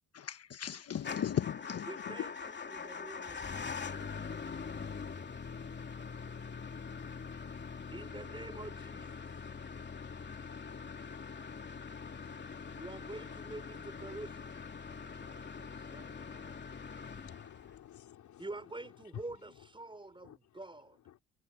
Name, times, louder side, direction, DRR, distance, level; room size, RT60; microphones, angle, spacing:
voice 1, 0.1-2.3, left 9 dB, 55° left, 1.3 m, -37 dB
Motor vehicle (road) / Engine starting / Idling, 1.0-17.9, left 5 dB, 35° left, 2.8 m, -43 dB
voice 2, 1.9-3.7 7.9-9.1 12.7-14.5 14.9-16.6 18.4-21.0, right 2 dB, 15° right, 5.2 m, -47 dB
voice 3, 17.1-20.6 21.1-21.2, left 11 dB, 70° left, 3.6 m, -53 dB
cardioid pair, 90°, 30 cm